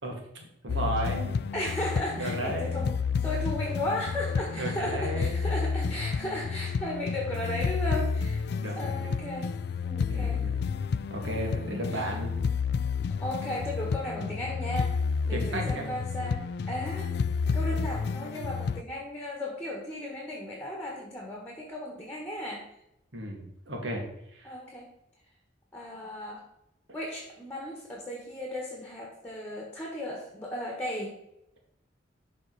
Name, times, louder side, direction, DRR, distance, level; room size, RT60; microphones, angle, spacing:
voice 1, 0.0-1.4 2.2-2.9 4.5-5.5 8.6-9.3 10.1-10.7 11.1-12.4 15.3-15.9 23.1-24.0 24.3-24.5, right 1 dB, 80° right, 0 dB, 2.3 m, -35 dB
sound 1, 0.7-18.8, left 5 dB, 55° left, 0.3 m, -30 dB
voice 2, 1.5-10.4 11.5-12.1 13.2-15.0 15.2-17.1 17.5-22.7 24.4-24.9 25.7-26.4 26.9-31.1, left 1 dB, 10° left, -1 dB, 1.5 m, -35 dB
12.0 x 4.4 x 4.1 m, 0.83 s
head